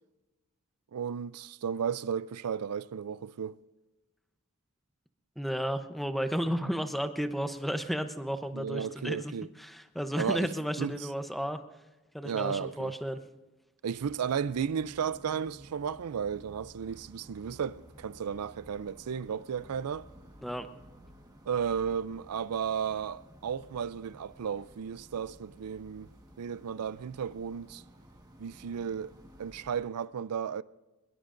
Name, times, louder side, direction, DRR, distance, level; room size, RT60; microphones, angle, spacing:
voice 1, 0.9-3.6 8.5-9.5 10.2-10.5 10.8-11.0 12.2-12.9 13.8-20.1 21.5-26.1 26.4-27.8 28.4-29.1 29.4-30.6, right 7 dB, 85° right, 0.4 m, -34 dB
voice 2, 5.4-9.3 9.6-11.6 12.1-13.2 20.4-20.7, equal, ahead, 0.8 m, -33 dB
sound 1, 13.9-29.8, equal, 15° right, 1.5 m, -54 dB
24.0 x 21.5 x 2.6 m
head